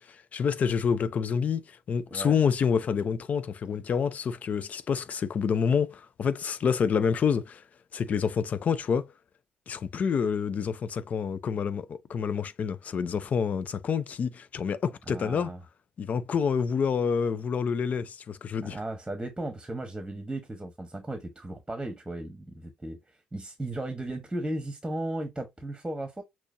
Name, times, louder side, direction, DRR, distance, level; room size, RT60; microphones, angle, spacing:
voice 1, 0.0-7.6 7.9-9.1 9.7-15.5 16.0-18.8, left 6 dB, 45° left, 0.5 m, -28 dB
voice 2, 15.1-15.6 18.6-26.2, right 1 dB, 10° right, 1.1 m, -36 dB
6.1 x 3.0 x 2.6 m
figure-of-eight pair, 45°, 4 cm